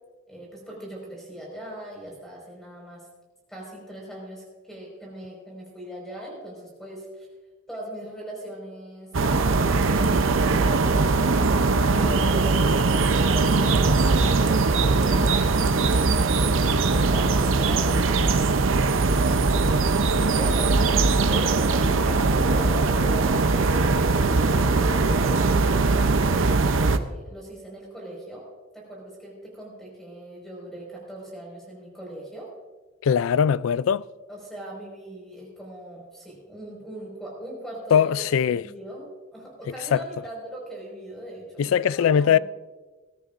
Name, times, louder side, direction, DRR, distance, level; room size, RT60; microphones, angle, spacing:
voice 1, 0.3-3.1 3.5-7.3 7.7-9.1 11.9-18.5 20.3-26.0 26.7-28.5 28.7-32.5 34.3-42.4, right 1 dB, ahead, 5.0 m, -39 dB
sound 1, 9.1-27.0, right 3 dB, 75° right, 0.7 m, -21 dB
voice 2, 33.0-34.0 37.9-38.6 39.9-40.0 41.6-42.4, left 8 dB, 85° left, 0.3 m, -20 dB
20.5 x 14.0 x 2.6 m
head